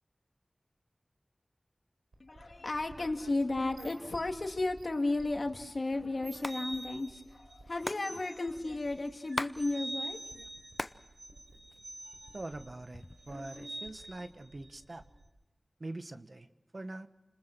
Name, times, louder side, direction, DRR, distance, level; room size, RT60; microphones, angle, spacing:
sound 1, 2.1-15.3, right 1 dB, 75° right, 4.7 m, -47 dB
voice 1, 2.2-10.5, left 2 dB, 70° left, 4 dB, 2.4 m, -34 dB
Hands, 6.2-6.6 6.8-6.9 7.1-9.6 9.9-11.0 11.4-12.2 12.7-13.3, left 1 dB, 30° left, 0.8 m, -39 dB
voice 2, 12.3-15.0 15.8-16.5 16.7-17.1, right 2 dB, 60° right, 9 dB, 1.3 m, -43 dB
30.0 x 20.5 x 6.1 m, 1.0 s
wide cardioid pair, 45°, 0 cm